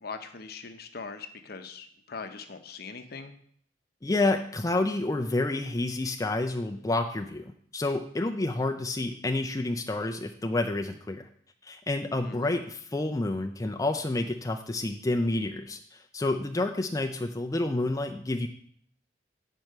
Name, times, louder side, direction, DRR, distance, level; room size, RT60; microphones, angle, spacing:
voice 1, 0.0-3.3 12.1-12.5, left 4 dB, 55° left, 7 dB, 0.8 m, -41 dB
voice 2, 4.0-11.3 11.6-18.5, left 2 dB, 20° left, 4 dB, 0.4 m, -29 dB
9.1 x 4.5 x 6.5 m, 0.63 s
head